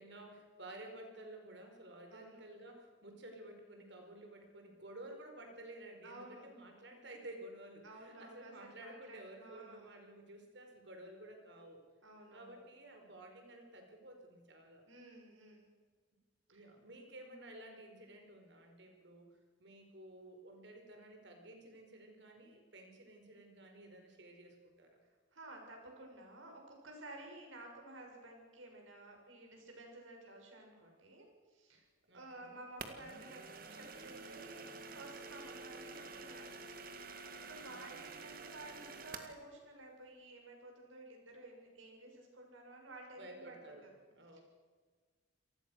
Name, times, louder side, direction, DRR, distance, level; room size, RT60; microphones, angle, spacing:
voice 1, 0.0-11.8 12.3-14.8 16.5-25.0 32.1-32.6 37.6-38.2 43.2-44.4, right 1 dB, 65° right, 4 dB, 4.8 m, -53 dB
voice 2, 2.1-2.5 6.0-6.5 7.8-9.9 12.0-12.6 14.9-15.7 16.5-16.7 25.3-31.9 32.1-33.4 33.7-34.7 34.9-36.6 37.4-43.9 44.3-44.4, right 2 dB, 90° right, 1 dB, 7.1 m, -53 dB
sound 1, 32.8-39.4, right 4 dB, 45° right, 2.0 m, -49 dB
28.0 x 19.5 x 6.5 m, 1.5 s
head